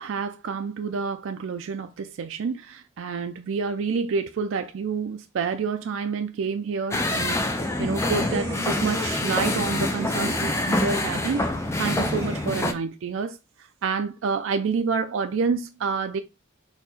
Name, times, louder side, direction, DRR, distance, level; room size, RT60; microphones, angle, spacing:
voice 1, 0.0-13.4 13.8-16.2, right 5 dB, 65° right, 0.4 m, -28 dB
sound 1, 6.9-12.7, left 2 dB, 15° left, 0.4 m, -26 dB
sound 2, 7.1-12.6, right 1 dB, 15° right, 0.9 m, -38 dB
4.4 x 2.9 x 4.0 m
head